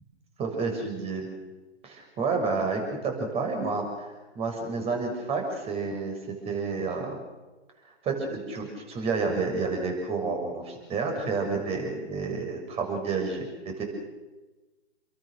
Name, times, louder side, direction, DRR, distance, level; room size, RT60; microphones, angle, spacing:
voice 1, 0.4-1.3 1.8-4.1 4.4-6.2 6.4-7.2 8.0-13.5 13.8-13.9, right 4 dB, 20° right, 3 dB, 6.9 m, -30 dB
29.5 x 23.0 x 6.8 m, 1.2 s
hypercardioid pair, 140°, 34 cm